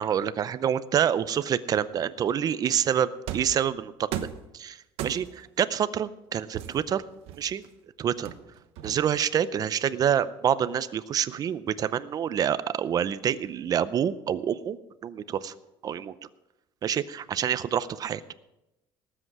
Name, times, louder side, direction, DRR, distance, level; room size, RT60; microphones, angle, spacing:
voice 1, 0.0-4.1 4.5-4.8 5.0-7.0 7.4-7.6 8.0-8.3 8.8-15.5 15.8-16.1 16.8-18.2, right 9 dB, 40° right, 15 dB, 0.6 m, -27 dB
sound 1, 3.3-3.6 4.1-4.5 5.0-5.5 6.5-7.7 8.3-9.3, right 10 dB, 85° right, 1.0 m, -36 dB
18.5 x 7.9 x 4.7 m, 0.95 s
cardioid pair, 145°, 10 cm